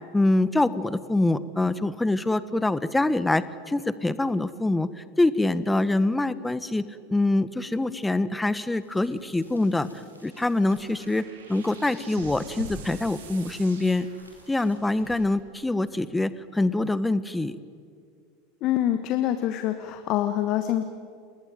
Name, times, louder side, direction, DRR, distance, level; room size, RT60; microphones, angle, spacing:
voice 1, 0.1-9.9 10.2-14.1 14.5-17.5, left 2 dB, 10° left, 15 dB, 1.2 m, -25 dB
sound 1, 8.7-16.5, right 1 dB, 90° right, 5.2 m, -47 dB
sound 2, 10.4-14.8, right 7 dB, 65° right, 4.0 m, -49 dB
voice 2, 18.6-20.8, left 12 dB, 45° left, 9 dB, 1.4 m, -25 dB
29.0 x 20.0 x 9.2 m, 2.2 s
figure-of-eight pair, 80°, 0 cm